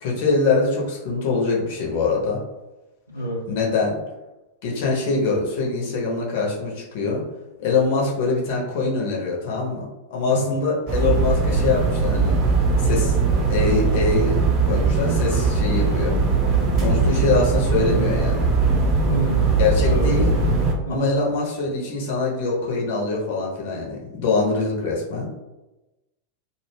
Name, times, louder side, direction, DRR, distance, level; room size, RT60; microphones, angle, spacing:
voice 1, 0.0-2.4 3.5-4.0 4.6-7.2 7.6-12.4 12.8-13.2 13.5-14.3 14.6-16.2 16.7-18.5 19.6-20.3 20.9-25.3, left 3 dB, 50° left, -2 dB, 0.6 m, -23 dB
voice 2, 3.1-3.4 10.2-10.5 19.0-19.4 19.8-20.1 20.9-21.2, right 2 dB, 90° left, -4 dB, 0.5 m, -27 dB
sound 1, 10.9-20.7, right 4 dB, 35° right, 0.5 m, -20 dB
2.1 x 2.1 x 3.2 m, 1.0 s
figure-of-eight pair, 90°, 0 cm